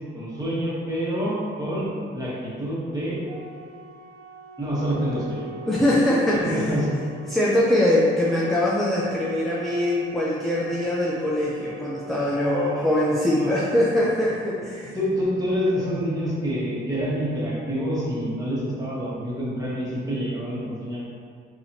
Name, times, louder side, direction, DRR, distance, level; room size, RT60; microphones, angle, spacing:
voice 1, 0.1-3.2 4.6-5.5 6.4-6.9 12.4-12.9 13.3-13.5 14.9-21.0, equal, 20° right, -8 dB, 1.4 m, -27 dB
Organ, 3.3-14.3, right 3 dB, 55° right, 0.5 m, -42 dB
voice 2, 5.7-6.8 7.2-15.0, left 1 dB, ahead, -6 dB, 0.4 m, -22 dB
4.0 x 2.8 x 2.7 m, 2.1 s
cardioid pair, 85°, 20 cm